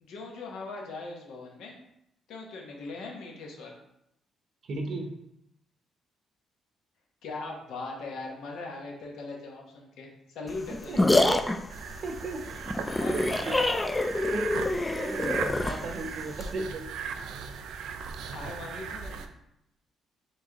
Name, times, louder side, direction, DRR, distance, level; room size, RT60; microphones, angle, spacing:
voice 1, 0.0-1.8 2.3-3.7 7.2-11.0 12.9-13.6 18.2-19.3, left 3 dB, 85° left, 0 dB, 1.0 m, -40 dB
voice 2, 4.6-5.1 10.7-11.6 12.0-12.4 13.1-13.5 14.2-14.5 14.9-16.9, right 3 dB, 60° right, 4 dB, 0.7 m, -35 dB
sound 1, 10.5-16.5, left 2 dB, 15° left, 0.3 m, -27 dB
sound 2, 11.7-19.3, right 6 dB, 85° right, 0.3 m, -38 dB
4.5 x 3.2 x 2.9 m, 0.81 s
cardioid pair, 90°, 0 cm